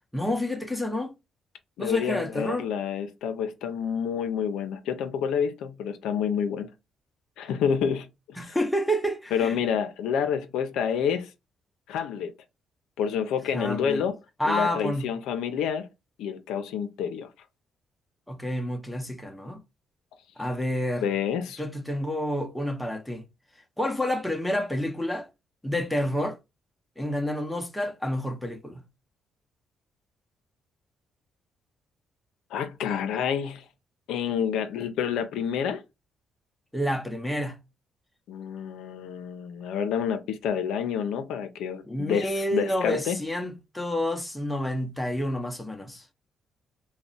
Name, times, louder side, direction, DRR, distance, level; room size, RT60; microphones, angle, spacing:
voice 1, 0.1-1.1 1.8-2.7 8.4-9.6 13.5-14.0 14.4-15.1 18.3-19.6 20.4-21.1 21.6-23.3 23.8-25.3 25.6-26.4 27.0-28.8 36.7-37.6 41.9-46.0, left 1 dB, 5° left, 0.6 m, -29 dB
voice 2, 1.8-6.7 7.4-8.1 8.4-8.6 9.3-11.3 11.9-12.3 13.0-14.2 14.4-15.9 16.2-17.3 21.0-21.6 32.5-33.6 34.1-35.8 38.3-43.2, left 7 dB, 85° left, 0.4 m, -28 dB
2.4 x 2.1 x 3.8 m
cardioid pair, 90°, 0 cm